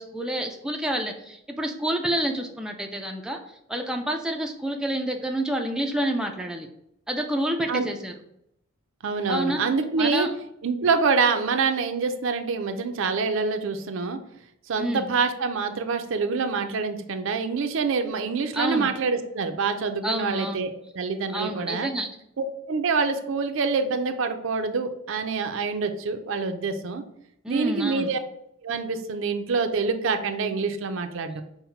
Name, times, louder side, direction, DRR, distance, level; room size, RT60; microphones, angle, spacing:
voice 1, 0.0-3.4 3.7-6.7 7.1-8.1 9.3-9.6 10.0-10.3 14.8-15.1 18.5-18.9 20.0-20.7 21.3-22.1 27.4-28.1, right 1 dB, 5° right, 2 dB, 0.3 m, -28 dB
voice 2, 9.0-10.3 10.6-14.2 14.7-21.9 22.4-27.0 27.5-28.2 28.6-31.4, right 4 dB, 65° right, 8 dB, 0.5 m, -26 dB
5.5 x 2.1 x 4.4 m, 0.77 s
head